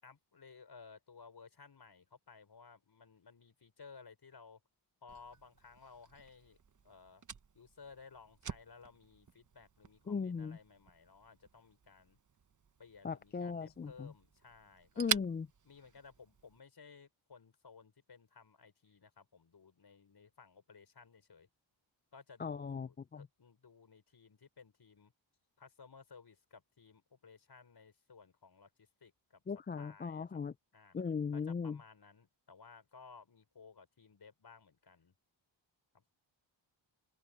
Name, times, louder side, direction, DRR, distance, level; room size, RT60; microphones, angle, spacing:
voice 1, 0.0-4.6 5.0-6.6 6.8-7.2 7.5-12.2 12.8-15.2 15.6-21.5 22.1-25.1 25.6-29.4 29.8-30.4 30.7-31.0 31.3-35.1 35.9-36.1, left 5 dB, 55° left, 5.8 m, -58 dB
Fire, 5.1-16.6, right 6 dB, 40° right, 1.1 m, -46 dB
voice 2, 10.1-10.6 13.0-14.1 15.0-15.5 22.4-23.3 29.5-30.5 30.9-31.8, left 5 dB, 25° left, 0.4 m, -38 dB
cardioid pair, 75°, 47 cm